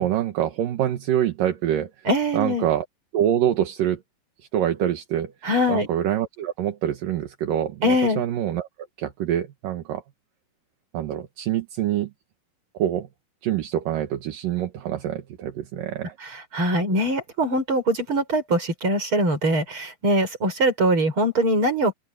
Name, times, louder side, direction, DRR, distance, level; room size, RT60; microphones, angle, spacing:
voice 1, 0.0-1.9 2.3-2.8 3.1-4.0 4.5-5.3 5.7-8.7 9.0-10.0 10.9-12.1 12.7-13.1 13.4-16.1, right 11 dB, 60° right, 2.6 m, -25 dB
voice 2, 2.0-2.6 5.4-5.9 7.8-8.2 16.2-21.9, equal, 25° right, 6.7 m, -22 dB
open air
omnidirectional pair, 5.3 m